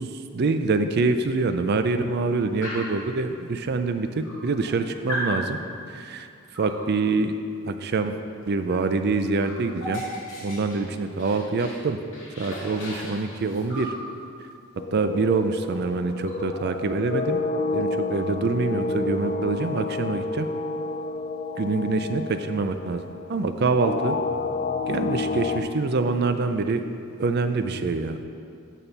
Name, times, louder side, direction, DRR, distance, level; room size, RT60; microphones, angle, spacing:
voice 1, 0.0-5.6 5.9-6.3 6.6-7.3 7.6-8.2 8.5-10.0 10.4-12.0 12.4-13.9 14.9-17.4 17.7-20.5 21.6-23.0 23.3-24.2 24.9-26.8 27.2-28.2, right 3 dB, 50° right, 9 dB, 0.4 m, -25 dB
Dog, 2.6-3.0 3.9-4.0 4.2-4.7 5.1-5.4 6.5-6.8 8.7-8.8 9.1-11.8 12.1-14.0 15.3-15.4 15.7-15.9 16.1-17.4, equal, 60° left, 2.2 m, -36 dB
sound 1, 14.8-25.6, left 3 dB, 35° left, 0.3 m, -30 dB
9.0 x 4.3 x 6.6 m, 2.5 s
head